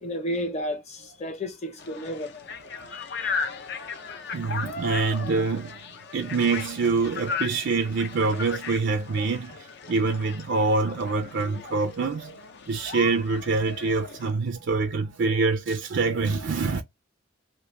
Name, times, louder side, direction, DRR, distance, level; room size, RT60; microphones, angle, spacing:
voice 1, 0.0-2.3 2.9-3.3, equal, 35° left, 0.9 m, -32 dB
sound 1, 1.8-14.3, left 5 dB, 55° left, 0.6 m, -36 dB
voice 2, 2.5-3.0 3.4-3.7 4.3-5.8 6.1-16.8, right 4 dB, 60° right, 0.4 m, -26 dB
3.0 x 2.8 x 3.3 m
head